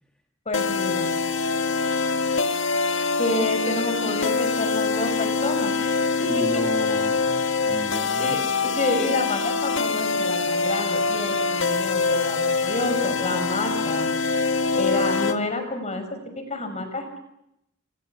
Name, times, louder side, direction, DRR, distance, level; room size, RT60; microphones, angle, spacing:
sound 1, 0.5-15.4, left 4 dB, 65° left, 1.8 m, -24 dB
voice 1, 0.5-1.1 3.2-6.6 8.2-14.1 14.7-16.0 16.5-17.2, left 2 dB, 35° left, 8 dB, 6.0 m, -29 dB
voice 2, 6.3-8.5, equal, 5° left, 3 dB, 2.0 m, -34 dB
28.0 x 28.0 x 7.2 m, 0.82 s
head